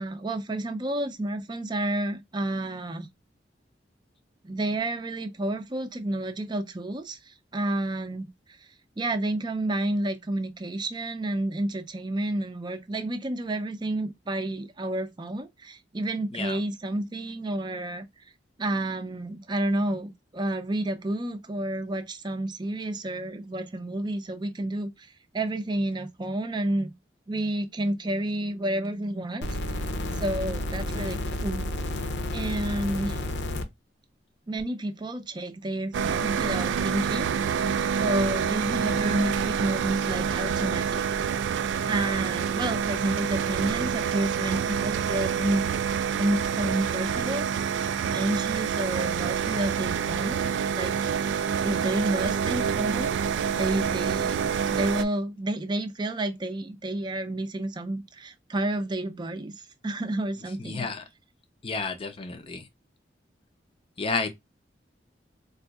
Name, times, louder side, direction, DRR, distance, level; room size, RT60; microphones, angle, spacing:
voice 1, 0.0-3.1 4.4-8.3 9.0-18.1 18.6-26.9 27.3-29.5 30.2-31.7 32.3-33.2 34.5-37.7 38.0-41.0 41.9-45.6 46.2-47.7 48.1-53.2 53.5-54.4 54.7-59.5 59.8-60.9, right 1 dB, 25° right, 0.5 m, -30 dB
sound 1, 29.4-33.6 34.6-34.7, left 1 dB, 80° left, 0.6 m, -31 dB
sound 2, 35.9-55.0, right 7 dB, 90° right, 0.3 m, -27 dB
voice 2, 60.6-61.0 61.6-62.7 64.0-64.3, left 4 dB, 30° left, 0.5 m, -31 dB
3.9 x 2.6 x 2.3 m
head